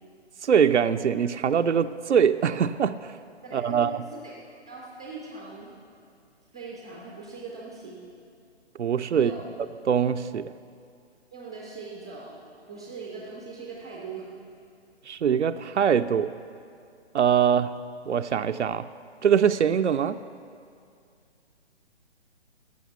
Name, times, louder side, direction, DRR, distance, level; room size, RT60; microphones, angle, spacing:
voice 1, 0.4-3.1 3.5-3.9 8.8-9.3 9.9-10.5 15.1-16.3 17.1-17.8 18.1-18.9 19.2-20.2, right 8 dB, 85° right, 9 dB, 0.5 m, -23 dB
voice 2, 3.4-4.4 4.7-5.7 6.5-8.0 9.1-9.5 11.3-14.3, right 3 dB, 5° right, -3 dB, 0.4 m, -40 dB
15.0 x 6.0 x 8.0 m, 2.4 s
figure-of-eight pair, 140°, 34 cm